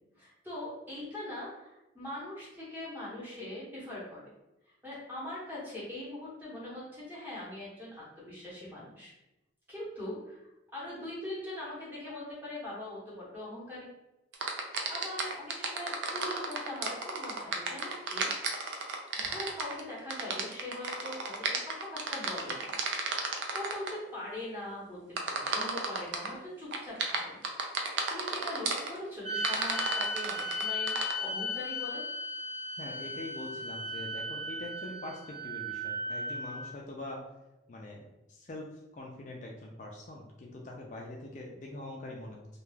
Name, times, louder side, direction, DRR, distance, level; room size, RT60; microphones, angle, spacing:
voice 1, 0.1-4.3 4.8-9.1 9.7-10.4 10.7-13.9 14.6-22.7 23.5-25.0 25.3-27.4 27.8-32.0, left 1 dB, 10° right, -7 dB, 0.9 m, -42 dB
sound 1, 14.3-23.9 25.2-26.3 26.7-28.9 29.4-31.1, right 4 dB, 75° right, 0.4 m, -33 dB
sound 2, 29.2-36.7, left 1 dB, 35° right, 0.7 m, -36 dB
voice 2, 32.8-37.2 37.7-38.0 38.3-42.5, left 2 dB, 40° left, -1 dB, 0.3 m, -43 dB
2.3 x 2.2 x 3.1 m, 0.95 s
head